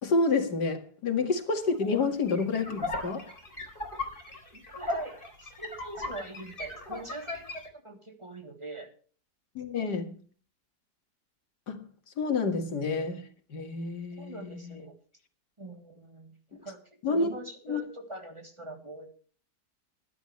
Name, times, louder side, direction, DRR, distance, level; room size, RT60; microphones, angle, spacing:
voice 1, 0.0-3.3 9.6-10.2 11.7-11.8 12.2-13.2 13.5-14.8 16.5-16.6 17.0-17.3 17.7-17.8, left 4 dB, 90° left, 2.5 m, -29 dB
sound 1, 1.7-7.7, left 2 dB, 30° left, 4.3 m, -38 dB
voice 2, 4.5-8.9 14.2-14.9 15.6-19.1, right 1 dB, 15° right, 3.0 m, -43 dB
20.5 x 11.5 x 3.2 m
omnidirectional pair, 1.7 m